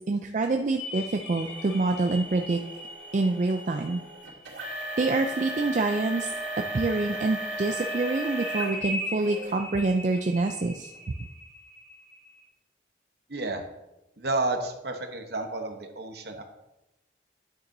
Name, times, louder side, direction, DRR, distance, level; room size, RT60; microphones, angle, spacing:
voice 1, 0.0-2.6 3.1-4.0 5.0-6.3 6.7-10.9, right 3 dB, 40° right, 5 dB, 0.4 m, -26 dB
sound 1, 0.8-6.3 7.7-12.4, left 1 dB, 60° left, 2.4 m, -40 dB
sound 2, 1.4-8.8 9.2-9.6 10.2-10.3 10.9-11.0, right 1 dB, 90° right, 2.6 m, -36 dB
voice 2, 13.3-13.6 14.2-16.4, right 2 dB, 60° right, 5 dB, 1.0 m, -31 dB
9.5 x 8.7 x 2.7 m, 0.95 s
head